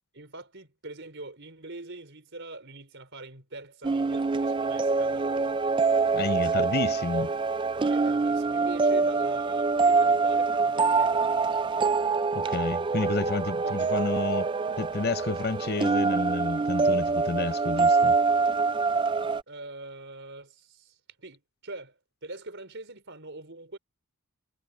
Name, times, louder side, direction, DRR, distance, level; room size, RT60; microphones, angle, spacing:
voice 1, 0.1-5.6 6.8-7.0 7.9-11.2 12.9-13.3 13.6-13.9 19.5-23.8, right 2 dB, 55° right, 4.9 m, -43 dB
sound 1, 3.8-19.4, right 4 dB, 20° right, 0.3 m, -25 dB
voice 2, 6.1-7.3 12.3-14.5 14.8-18.1, left 3 dB, 45° left, 0.6 m, -30 dB
head